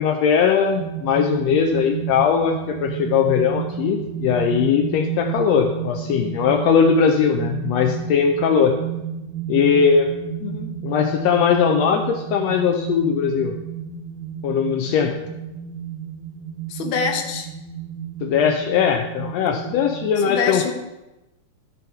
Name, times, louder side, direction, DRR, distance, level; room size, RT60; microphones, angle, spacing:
voice 1, 0.0-8.8 9.5-10.1 10.8-13.5 14.4-15.2 18.2-20.7, left 7 dB, 90° left, 4 dB, 1.4 m, -19 dB
sound 1, 0.8-20.2, right 8 dB, 70° right, 1.9 m, -31 dB
voice 2, 10.4-10.8 16.7-17.5 20.2-20.7, left 5 dB, 65° left, 4 dB, 1.2 m, -25 dB
13.0 x 5.5 x 4.4 m, 1.0 s
omnidirectional pair, 3.7 m